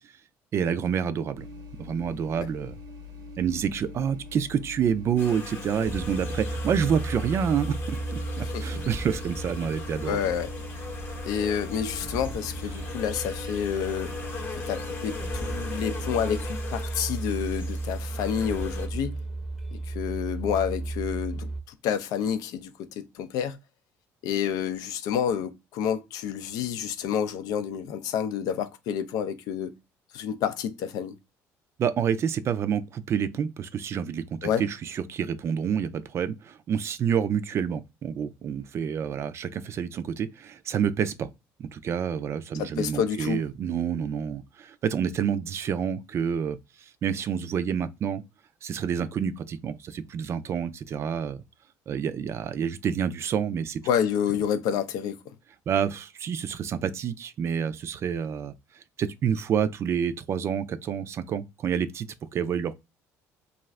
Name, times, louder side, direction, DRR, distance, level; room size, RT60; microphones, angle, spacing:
voice 1, 0.5-1.5 1.8-2.8 3.4-10.2 31.8-41.3 41.6-48.2 48.6-51.4 51.9-53.8 55.7-62.7, right 7 dB, 45° right, 0.4 m, -28 dB
sound 1, 1.3-16.4, left 3 dB, 85° right, 0.9 m, -43 dB
sound 2, 5.2-18.9, left 4 dB, 35° left, 0.9 m, -40 dB
sound 3, 5.8-21.6, right 2 dB, ahead, 0.7 m, -35 dB
voice 2, 10.1-10.5 11.2-14.1 14.5-19.2 19.9-21.5 21.8-23.6 24.2-29.7 30.1-31.1 34.4-34.6 42.6-43.4 53.9-55.2, left 8 dB, 75° left, 0.4 m, -29 dB
2.4 x 2.4 x 3.1 m
cardioid pair, 105°, 6 cm